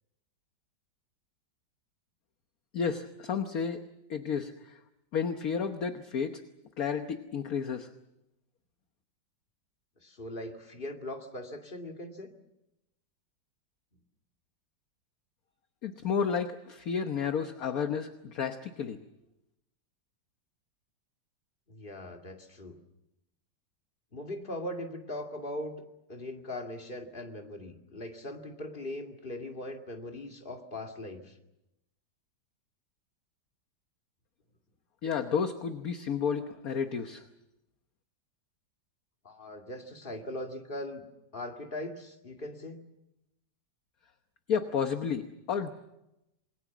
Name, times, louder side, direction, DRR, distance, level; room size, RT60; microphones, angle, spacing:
voice 1, 2.7-3.8 4.1-4.8 5.1-6.4 6.8-7.9 15.8-19.0 35.0-37.2 44.5-45.7, left 6 dB, 55° left, 7 dB, 1.5 m, -31 dB
voice 2, 10.0-12.3 21.7-22.8 24.1-25.7 26.1-31.4 39.2-41.0 41.3-42.8, left 1 dB, 30° left, 3 dB, 2.5 m, -40 dB
27.5 x 21.5 x 7.3 m, 0.91 s
omnidirectional pair, 1.9 m